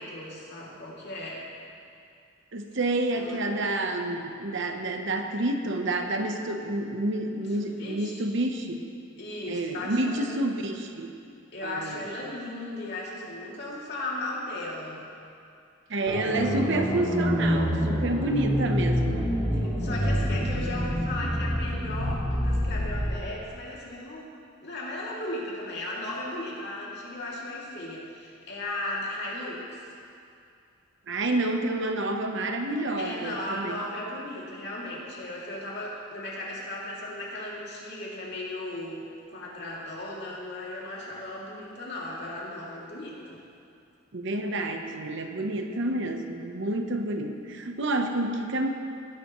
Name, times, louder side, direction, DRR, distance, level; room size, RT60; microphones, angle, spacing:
voice 1, 0.0-1.4 3.1-3.4 7.6-8.2 9.2-10.3 11.5-15.0 19.6-24.3 24.6-29.8 33.0-43.4, left 1 dB, 55° left, -5 dB, 2.6 m, -36 dB
voice 2, 2.5-8.9 9.5-11.1 11.6-12.0 15.9-19.3 31.1-33.8 44.1-48.7, right 2 dB, 60° right, 5 dB, 0.9 m, -29 dB
sound 1, 16.1-23.1, equal, 10° right, 2.0 m, -27 dB
18.0 x 11.0 x 3.1 m, 2.5 s
head